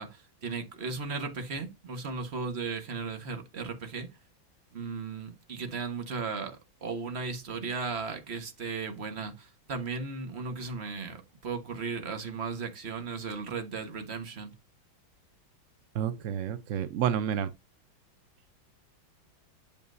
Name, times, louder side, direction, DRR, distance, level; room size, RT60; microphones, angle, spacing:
voice 1, 0.0-4.1 4.7-14.5, right 4 dB, 35° right, 1.4 m, -36 dB
voice 2, 15.9-17.5, right 9 dB, 85° right, 0.6 m, -29 dB
8.7 x 6.9 x 2.6 m
omnidirectional pair, 2.2 m